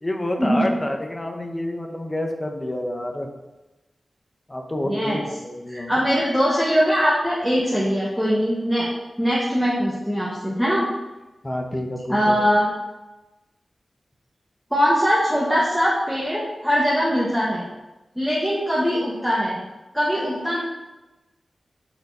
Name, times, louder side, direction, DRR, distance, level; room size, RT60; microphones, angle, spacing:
voice 1, 0.0-3.3 4.5-5.9 11.4-12.4, left 1 dB, 25° left, 2 dB, 0.8 m, -28 dB
voice 2, 4.8-5.2 5.7-8.9 9.2-10.9 12.1-12.7 14.7-17.7 18.2-19.6 19.9-20.6, equal, ahead, -7 dB, 1.2 m, -21 dB
4.5 x 3.9 x 5.4 m, 1.1 s
wide cardioid pair, 75°, 0 cm